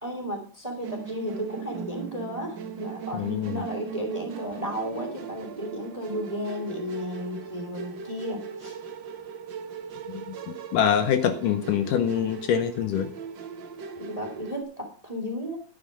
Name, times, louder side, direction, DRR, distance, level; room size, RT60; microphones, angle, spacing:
voice 1, 0.0-8.8 14.0-15.6, equal, 10° right, 4 dB, 2.1 m, -34 dB
Musical instrument, 0.8-14.6, right 6 dB, 65° right, 1.1 m, -39 dB
voice 2, 3.1-3.6 10.3-10.4 10.7-13.1, left 8 dB, 75° left, 9 dB, 2.3 m, -24 dB
12.0 x 9.3 x 5.2 m, 0.39 s
omnidirectional pair, 4.0 m